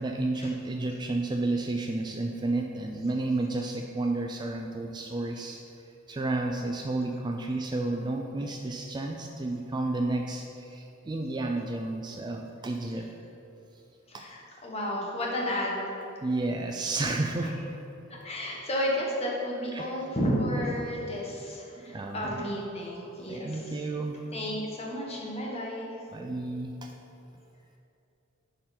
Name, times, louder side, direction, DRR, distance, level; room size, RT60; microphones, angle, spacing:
voice 1, 0.0-5.6 6.1-13.1 14.1-14.2 16.2-17.8 19.7-19.9 21.8-22.5 23.3-24.1 26.1-26.9, right 2 dB, 20° right, 2 dB, 0.3 m, -31 dB
voice 2, 14.1-15.9 17.4-17.5 18.2-23.8 24.3-26.0, equal, 30° left, -3 dB, 1.3 m, -32 dB
10.5 x 3.8 x 4.3 m, 2.8 s
head